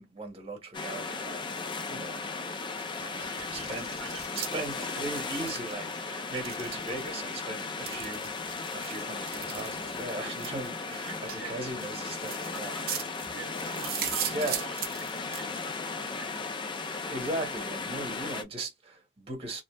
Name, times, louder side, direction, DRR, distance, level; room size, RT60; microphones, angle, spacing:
voice 1, 0.0-1.5 1.9-2.3 2.9-3.2 3.5-4.0 4.3-12.8 14.2-14.6 17.1-19.6, right 2 dB, 30° right, 1.2 m, -38 dB
sound 1, 0.7-18.4, left 4 dB, 25° left, 0.4 m, -36 dB
Packing tape duct tape, 2.8-4.3 4.7-4.8 5.6-5.8 7.0-7.2 7.9-8.0 8.6-8.7 10.3-10.6 11.6-11.7 12.1-12.2 12.7-16.6, left 3 dB, 50° left, 0.8 m, -53 dB
voice 2, 3.1-4.3 4.8-5.4 6.8-6.9 11.0-11.6 11.9-12.0 12.5-16.4, right 5 dB, 85° right, 0.7 m, -47 dB
sound 2, 3.8-15.4, right 8 dB, 50° right, 0.7 m, -40 dB
2.7 x 2.0 x 3.2 m
head